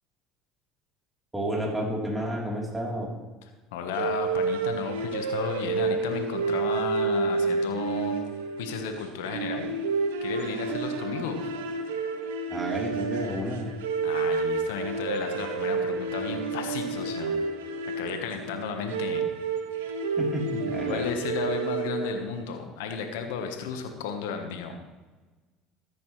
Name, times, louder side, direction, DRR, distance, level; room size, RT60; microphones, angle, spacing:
voice 1, 1.3-3.1 12.5-13.7 20.2-21.1, equal, 10° right, -3 dB, 3.6 m, -31 dB
voice 2, 3.7-8.2 8.6-9.7 10.2-11.5 14.0-17.3 18.0-19.3 20.8-24.8, left 6 dB, 80° left, 5 dB, 1.2 m, -33 dB
sound 1, 3.9-22.4, right 4 dB, 90° right, 1.1 m, -30 dB
14.0 x 10.0 x 3.3 m, 1.2 s
supercardioid pair, 85°, 0 cm